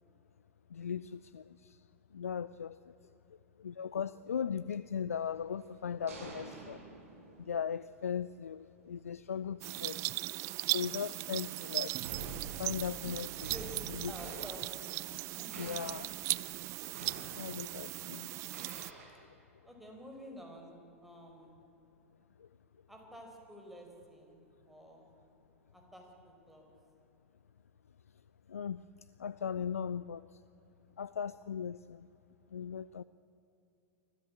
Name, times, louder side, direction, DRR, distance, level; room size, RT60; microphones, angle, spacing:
voice 1, 0.7-1.8 2.1-2.8 3.6-6.8 7.4-10.0 10.7-11.9 12.6-13.5 13.9-14.1 15.6-16.1 17.3-18.6 22.4-22.5 28.5-28.8 29.2-30.4 31.0-32.1 32.5-33.0, left 7 dB, 75° left, 16 dB, 0.4 m, -38 dB
sound 1, 5.3-7.8 9.2-9.4 10.2-11.2 11.7-15.3 15.5-16.6 16.9-17.9 18.5-19.0, right 3 dB, 70° right, 7.5 m, -48 dB
sound 2, 9.6-18.9, right 19 dB, 40° right, 0.5 m, -38 dB
voice 2, 13.5-14.8 15.4-15.8 19.6-21.6 22.9-25.1 25.7-26.7, equal, ahead, 1 dB, 4.8 m, -50 dB
25.0 x 15.5 x 8.8 m, 3.0 s
figure-of-eight pair, 90°, 8 cm